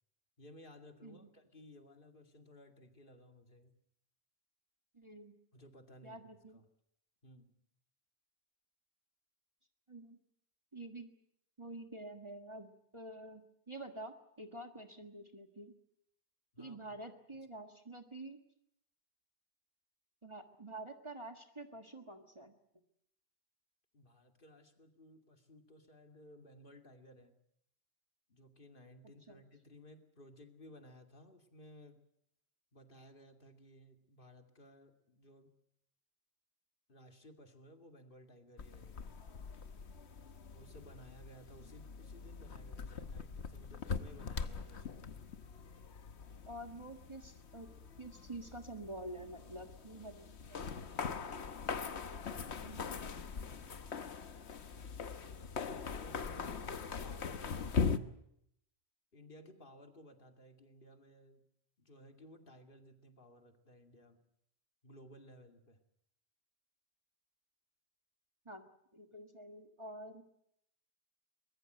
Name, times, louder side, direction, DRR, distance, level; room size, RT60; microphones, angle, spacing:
voice 1, 0.4-3.7 5.5-6.6 7.2-7.6 16.5-16.9 23.9-27.4 28.3-32.0 32.7-35.5 36.9-39.2 40.5-45.1 55.8-58.1 59.1-61.5 61.8-64.2 64.8-65.8, left 1 dB, 55° left, 5 dB, 2.6 m, -58 dB
voice 2, 4.9-5.3 6.0-6.6 9.9-10.2 10.7-11.1 11.6-15.8 16.6-18.4 20.2-22.5 29.3-29.4 46.5-47.7 48.0-50.6 52.5-53.5 68.5-68.6 68.9-70.2, right 1 dB, 25° right, 4 dB, 1.7 m, -48 dB
sound 1, 38.6-58.0, left 5 dB, 85° left, 1.4 m, -42 dB
23.5 x 21.0 x 7.9 m, 0.74 s
omnidirectional pair, 1.1 m